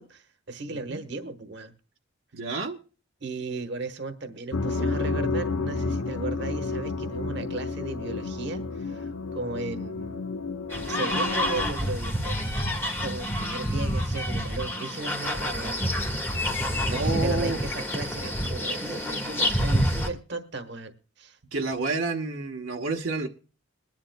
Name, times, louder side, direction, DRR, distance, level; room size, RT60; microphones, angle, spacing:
voice 1, 0.0-1.7 3.2-10.3 10.8-12.4 12.9-16.5 16.9-21.4, right 3 dB, 60° right, 1.2 m, -36 dB
voice 2, 0.7-1.0 2.3-2.8 16.9-17.6 21.5-23.3, right 3 dB, 75° right, 1.1 m, -29 dB
sound 1, 4.5-11.7, left 3 dB, 85° left, 1.1 m, -31 dB
sound 2, 10.7-20.1, equal, 10° left, 1.3 m, -28 dB
21.5 x 10.5 x 2.2 m
head